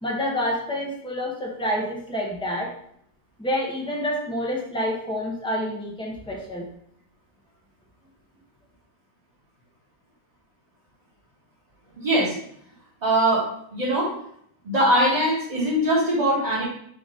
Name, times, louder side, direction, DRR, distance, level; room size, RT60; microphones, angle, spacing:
voice 1, 0.0-2.7 3.4-6.7, equal, 10° left, -2 dB, 0.3 m, -28 dB
voice 2, 12.0-12.3 13.0-13.4 13.7-14.1 14.6-16.6, right 1 dB, 25° right, -9 dB, 1.2 m, -21 dB
3.9 x 2.6 x 4.8 m, 0.67 s
omnidirectional pair, 1.8 m